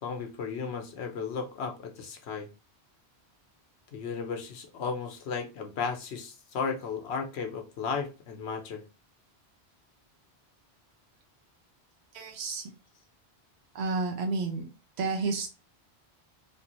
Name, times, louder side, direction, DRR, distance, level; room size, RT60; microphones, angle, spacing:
voice 1, 0.0-2.5 3.9-8.8, left 5 dB, 80° left, 4 dB, 0.9 m, -34 dB
voice 2, 12.1-12.7 13.7-14.7 15.0-15.5, right 4 dB, 75° right, 2 dB, 1.1 m, -31 dB
3.5 x 2.6 x 2.8 m, 0.30 s
omnidirectional pair, 1.1 m